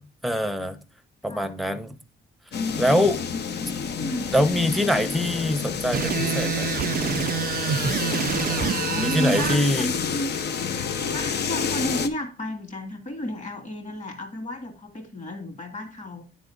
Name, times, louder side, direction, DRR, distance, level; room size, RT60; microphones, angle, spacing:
voice 1, 0.2-0.8 1.2-1.9 2.8-3.2 4.3-6.7 8.5-8.6 9.0-9.9, left 1 dB, ahead, 0.8 m, -24 dB
sound 1, 2.5-12.1, left 6 dB, 55° left, 0.8 m, -29 dB
voice 2, 3.7-4.3 8.5-10.3 11.0-16.2, left 1 dB, 35° left, 2.3 m, -32 dB
sound 2, 5.9-9.6, right 9 dB, 50° right, 0.4 m, -27 dB
10.0 x 3.6 x 3.8 m
cardioid pair, 90°, 20 cm